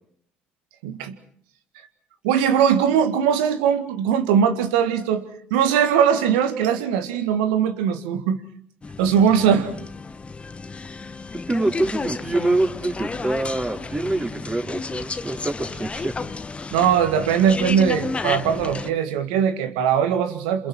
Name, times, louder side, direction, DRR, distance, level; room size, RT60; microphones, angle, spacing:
voice 1, 0.8-1.2 2.2-5.2 5.5-8.4 9.0-9.7 16.7-20.7, right 8 dB, 85° right, 9 dB, 2.0 m, -20 dB
sound 1, 8.8-18.9, left 4 dB, 30° left, 1.2 m, -32 dB
voice 2, 11.5-16.1, right 2 dB, 20° right, 2 dB, 4.8 m, -25 dB
28.0 x 27.5 x 4.5 m, 0.63 s
hypercardioid pair, 60°, 4 cm